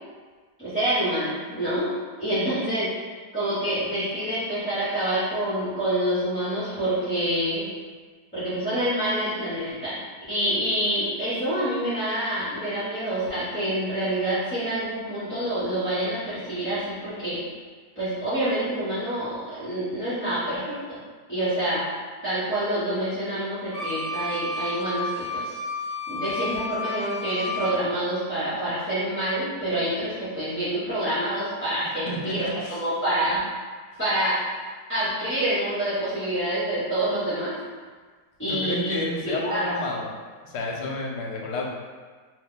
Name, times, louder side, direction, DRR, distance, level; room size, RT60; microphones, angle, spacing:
voice 1, 0.6-1.9 2.2-2.9 3.3-7.7 8.3-10.0 10.3-17.4 18.0-21.0 21.3-21.9 22.2-25.5 26.1-33.4 34.0-34.4 34.9-37.5 38.4-38.9 39.2-39.7, right 1 dB, 10° left, -16 dB, 0.7 m, -27 dB
Wind instrument woodwind instrument, 23.7-27.8, left 2 dB, 70° right, 1.4 m, -31 dB
voice 2, 32.1-32.8 38.5-40.2 40.4-41.6, left 2 dB, 75° left, -1 dB, 1.1 m, -31 dB
2.9 x 2.2 x 3.7 m, 1.5 s
omnidirectional pair, 1.8 m